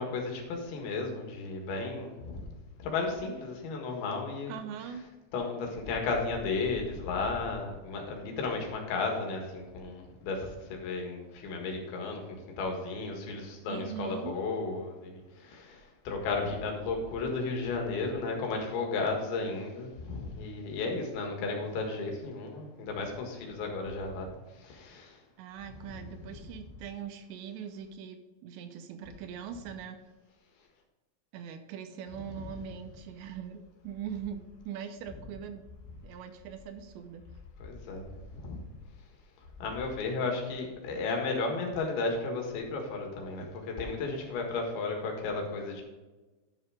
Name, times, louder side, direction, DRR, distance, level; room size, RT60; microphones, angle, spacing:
voice 1, 0.0-2.5 2.8-4.6 5.3-25.2 32.4-32.5 37.6-38.6 39.6-45.8, left 3 dB, 75° left, 2 dB, 3.9 m, -34 dB
voice 2, 4.5-5.0 13.7-14.4 25.4-30.1 31.3-35.7 36.0-37.3, right 8 dB, 80° right, 7 dB, 2.7 m, -41 dB
11.5 x 5.9 x 4.9 m, 1.2 s
omnidirectional pair, 5.3 m